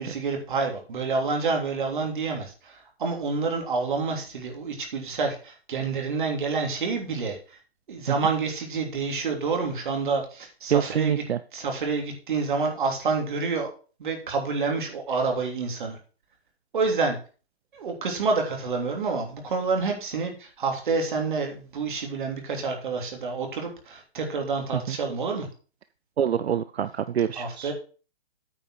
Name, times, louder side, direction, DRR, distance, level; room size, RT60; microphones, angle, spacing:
voice 1, 0.0-7.6 7.9-11.2 11.5-13.7 14.0-16.0 16.7-17.2 17.7-25.5 27.3-27.7, right 4 dB, 50° right, 2 dB, 3.0 m, -28 dB
voice 2, 10.7-11.4 24.7-25.0 26.2-27.7, right 9 dB, 85° right, 13 dB, 0.7 m, -26 dB
9.1 x 5.4 x 6.4 m, 0.38 s
hypercardioid pair, 165°, 31 cm